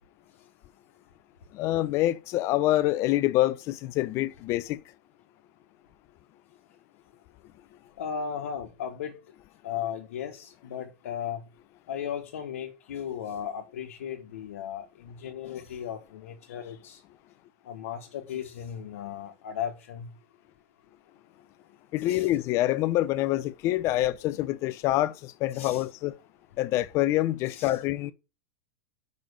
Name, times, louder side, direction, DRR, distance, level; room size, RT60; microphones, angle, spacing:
voice 1, 1.5-4.8 21.9-26.2 26.6-28.1, left 15 dB, 40° left, 0.6 m, -26 dB
voice 2, 8.0-9.2 9.6-11.4 11.9-17.0 17.6-20.1 22.0-22.3 25.5-25.8 27.5-27.7, left 8 dB, 80° left, 1.2 m, -36 dB
5.2 x 5.2 x 6.4 m
supercardioid pair, 135°, 7 cm